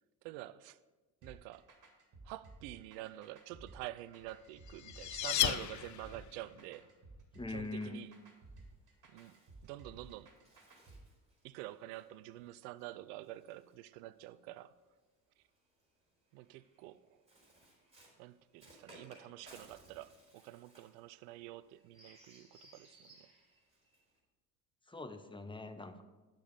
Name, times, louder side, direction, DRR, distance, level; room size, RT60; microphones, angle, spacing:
voice 1, 0.2-0.8 1.2-1.7 2.2-6.9 7.5-8.1 9.1-9.4 9.6-10.3 11.4-14.7 16.3-17.2 18.2-23.3, right 16 dB, 70° right, 0.6 m, -48 dB
sound 1, 1.2-11.0, right 3 dB, 40° right, 2.2 m, -56 dB
sound 2, 4.3-6.4, left 11 dB, 40° left, 0.6 m, -35 dB
voice 2, 7.3-8.0 24.9-26.0, left 2 dB, 10° left, 0.9 m, -42 dB
Bird, 7.9-14.5 15.4-24.2, right 1 dB, 10° right, 3.8 m, -63 dB
9.1 x 7.0 x 5.2 m
hypercardioid pair, 60°, 49 cm